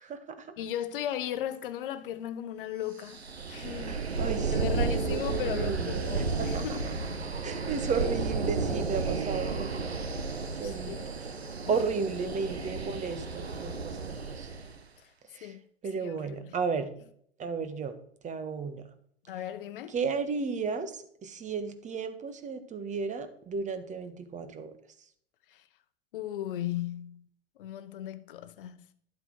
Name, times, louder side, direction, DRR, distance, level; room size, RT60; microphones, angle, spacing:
voice 1, 0.0-0.5 3.9-7.0 7.4-10.0 10.5-14.5 15.3-15.6 15.8-16.9 17.4-17.9 18.2-18.8 19.9-24.7, right 5 dB, 25° right, 1.5 m, -34 dB
voice 2, 0.6-3.2 3.5-4.0 4.5-6.9 10.6-11.0 11.7-11.8 15.4-15.6 16.0-16.5 19.3-19.9 25.5-25.6 26.1-27.3 27.6-28.8, left 11 dB, 60° left, 1.1 m, -36 dB
sound 1, 3.0-14.8, right 4 dB, 85° right, 1.0 m, -32 dB
12.5 x 7.8 x 4.7 m
figure-of-eight pair, 85°, 31 cm